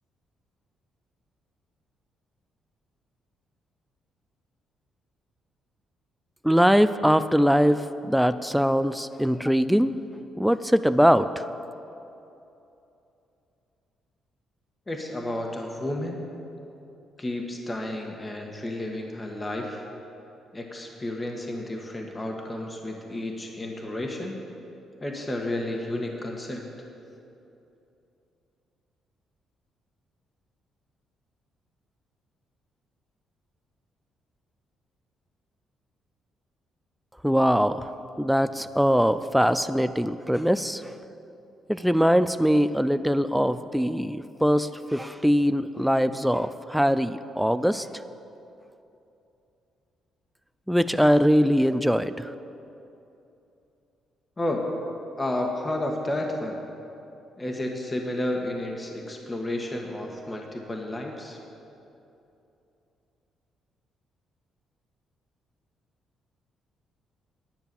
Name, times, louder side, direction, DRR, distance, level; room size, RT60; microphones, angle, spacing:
voice 1, 6.4-10.0 10.4-11.3 37.2-37.9 38.2-40.8 41.7-47.9 50.7-52.3, equal, ahead, 12 dB, 0.3 m, -22 dB
voice 2, 14.9-16.2 17.2-19.8 20.5-24.4 25.0-26.6 54.4-54.6 55.2-56.6 57.4-61.4, left 1 dB, 20° left, 1 dB, 1.4 m, -31 dB
10.5 x 9.0 x 6.9 m, 2.8 s
cardioid pair, 90°, 0 cm